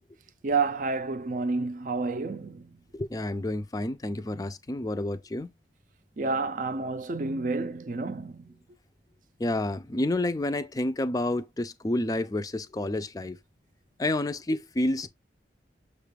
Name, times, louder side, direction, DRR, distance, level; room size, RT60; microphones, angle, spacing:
voice 1, 0.4-2.7 6.2-8.5, right 3 dB, 45° right, 0.4 m, -29 dB
voice 2, 2.9-5.5 9.4-13.4 14.0-15.1, left 1 dB, 20° left, 0.4 m, -29 dB
6.5 x 2.3 x 3.3 m
head